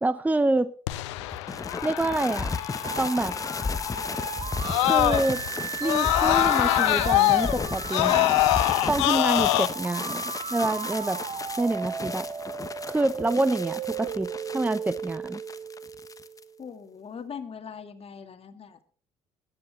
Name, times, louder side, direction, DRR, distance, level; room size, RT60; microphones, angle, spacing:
voice 1, 0.0-0.7 1.8-2.6 3.0-3.3 4.8-5.4 5.8-8.4 8.9-11.2 11.6-12.3 12.8-15.4, right 2 dB, 10° right, 15 dB, 0.7 m, -27 dB
Screaming, 0.9-5.5 5.8-9.7, left 17 dB, 80° left, 0.8 m, -24 dB
sound 1, 1.2-16.4, left 4 dB, 25° left, 1.1 m, -34 dB
sound 2, 2.8-16.7, right 8 dB, 45° right, 1.3 m, -36 dB
voice 2, 16.6-18.8, left 6 dB, 40° left, 8 dB, 2.2 m, -41 dB
20.5 x 9.0 x 3.8 m, 0.43 s
hypercardioid pair, 55°, 15 cm